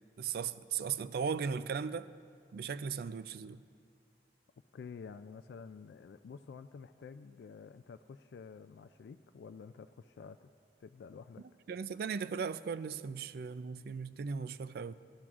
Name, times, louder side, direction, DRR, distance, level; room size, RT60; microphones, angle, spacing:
voice 1, 0.2-2.1 2.5-3.6 11.7-14.9, right 6 dB, 60° right, 0.3 m, -37 dB
voice 2, 4.7-10.5 10.8-11.4, left 5 dB, 70° left, 0.3 m, -50 dB
18.0 x 12.0 x 2.5 m
head